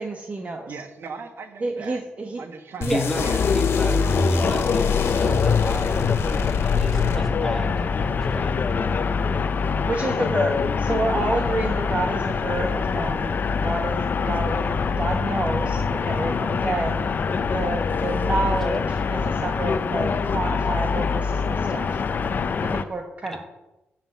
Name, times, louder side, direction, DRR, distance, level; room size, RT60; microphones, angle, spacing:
voice 1, 0.0-0.7 1.6-2.4 2.8-3.0 7.1-7.3 9.8-13.4 13.6-17.1 17.5-22.0 22.6-23.4, right 2 dB, 30° right, 3 dB, 1.2 m, -29 dB
voice 2, 0.7-2.0 2.4-3.5, right 5 dB, 60° right, 7 dB, 1.7 m, -38 dB
sound 1, 2.8-7.6, left 5 dB, 75° left, 1.8 m, -25 dB
voice 3, 2.9-3.2 3.5-8.7 23.2-23.4, left 1 dB, 5° left, 3 dB, 1.8 m, -34 dB
sound 2, 3.1-22.8, left 5 dB, 45° left, 0.7 m, -24 dB
14.5 x 6.1 x 8.2 m, 0.98 s
wide cardioid pair, 130°, 4 cm